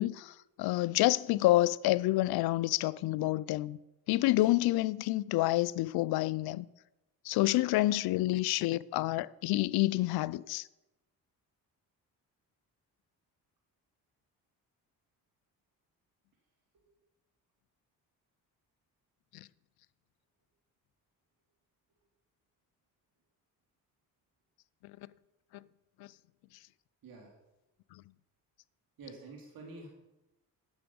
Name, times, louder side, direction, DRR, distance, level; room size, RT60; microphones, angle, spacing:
voice 1, 0.0-3.8 4.1-6.7 7.2-10.7 19.3-19.5 26.0-26.1 27.9-28.0, left 17 dB, 75° left, 0.5 m, -28 dB
voice 2, 27.0-27.4 29.0-29.9, right 3 dB, 65° right, 2.8 m, -48 dB
9.8 x 7.0 x 7.1 m
cardioid pair, 80°, 38 cm